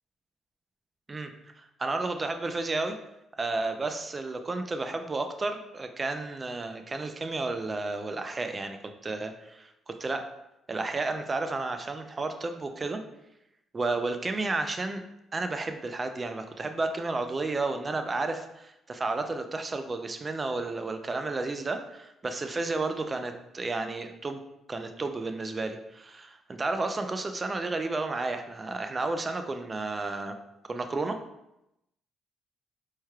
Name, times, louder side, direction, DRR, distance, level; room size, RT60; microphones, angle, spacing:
voice 1, 1.6-2.9 3.4-10.3 10.7-13.0 13.7-15.0 15.3-24.4 24.7-30.3 30.7-31.2, right 3 dB, 30° right, 7 dB, 0.4 m, -32 dB
4.3 x 3.2 x 2.3 m, 0.86 s
cardioid pair, 75°, 0 cm